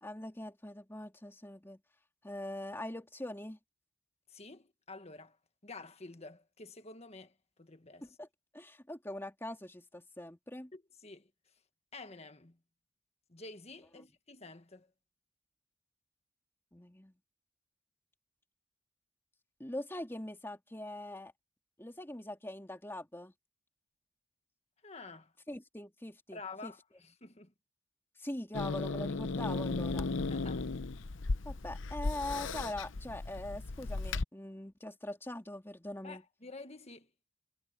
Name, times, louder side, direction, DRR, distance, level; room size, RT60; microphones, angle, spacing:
voice 1, 0.0-1.8 2.2-3.6 8.0-8.3 8.5-10.7 14.0-14.1 16.7-17.1 19.6-21.3 21.8-23.3 25.5-26.7 28.2-30.1 31.4-36.2, left 1 dB, 10° left, 2.7 m, -42 dB
voice 2, 4.3-5.4 5.6-7.3 7.6-8.1 10.7-11.3 11.9-12.6 13.3-14.9 24.8-25.3 26.3-27.5 30.3-30.7 36.0-37.1, left 3 dB, 30° left, 1.6 m, -49 dB
Growling / Hiss, 28.5-34.2, left 3 dB, 65° left, 0.8 m, -35 dB
head